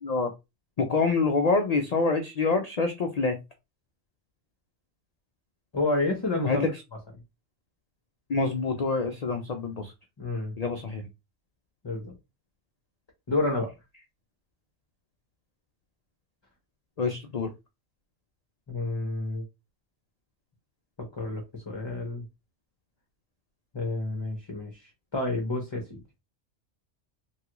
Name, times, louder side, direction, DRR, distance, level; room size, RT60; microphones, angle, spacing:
voice 1, 0.8-3.4 6.4-6.7 8.3-9.9 10.6-11.1 17.0-17.5, left 4 dB, 80° left, 0.3 m, -26 dB
voice 2, 5.7-6.7 10.2-10.5 11.8-12.1 13.3-13.7 18.7-19.4 21.0-22.3 23.7-26.0, left 2 dB, 30° left, 0.5 m, -30 dB
3.1 x 2.3 x 2.9 m
omnidirectional pair, 1.3 m